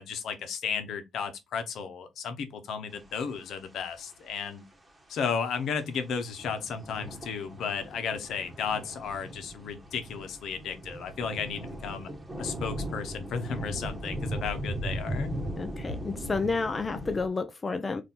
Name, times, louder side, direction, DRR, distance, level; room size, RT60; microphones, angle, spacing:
voice 1, 0.0-4.6 5.1-12.1 12.4-15.4, left 6 dB, 70° left, 0.9 m, -34 dB
sound 1, 3.0-3.6 5.4-5.6 6.3-17.3, right 1 dB, 15° right, 1.6 m, -38 dB
voice 2, 15.6-18.0, left 4 dB, 30° left, 0.5 m, -30 dB
4.3 x 2.7 x 3.7 m
cardioid pair, 90°, 0 cm